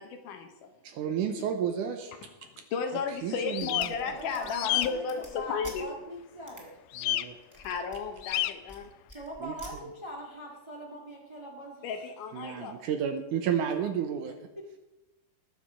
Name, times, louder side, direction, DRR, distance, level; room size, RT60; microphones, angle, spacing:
voice 1, 0.0-0.7 1.4-1.5 2.4-5.9 7.6-8.9 11.8-12.8, left 6 dB, 70° left, 6 dB, 2.2 m, -34 dB
voice 2, 0.8-2.1 3.2-3.9 7.0-7.4 9.4-9.5 12.3-14.5, right 8 dB, 75° right, 6 dB, 2.0 m, -31 dB
sound 1, 3.5-3.9 4.5-4.9 6.9-7.2 8.2-8.5, left 15 dB, 90° left, 1.9 m, -29 dB
sound 2, 3.5-5.8 6.5-6.6 7.3-8.8 9.1-9.7, equal, 5° right, 1.8 m, -49 dB
voice 3, 4.0-6.8 9.1-11.8 14.5-14.6, equal, 35° right, -1 dB, 0.4 m, -42 dB
20.0 x 7.2 x 5.0 m, 1.0 s
omnidirectional pair, 4.3 m